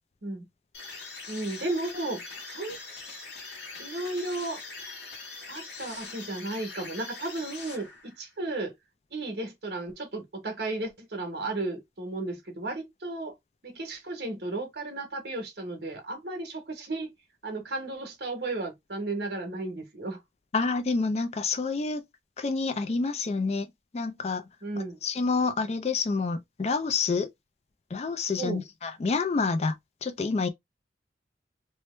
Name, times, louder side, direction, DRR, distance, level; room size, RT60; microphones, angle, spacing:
sound 1, 0.7-8.3, left 4 dB, 85° left, 1.2 m, -42 dB
voice 1, 1.3-2.8 3.8-4.6 5.5-8.7 9.1-13.3 13.6-17.1 17.4-20.2 24.6-25.0 28.4-28.6, right 2 dB, 70° right, 1.1 m, -34 dB
voice 2, 20.5-22.0 22.4-24.4 25.0-27.3 27.9-29.7 30.0-30.5, left 4 dB, 35° left, 0.3 m, -28 dB
3.0 x 2.1 x 3.1 m
head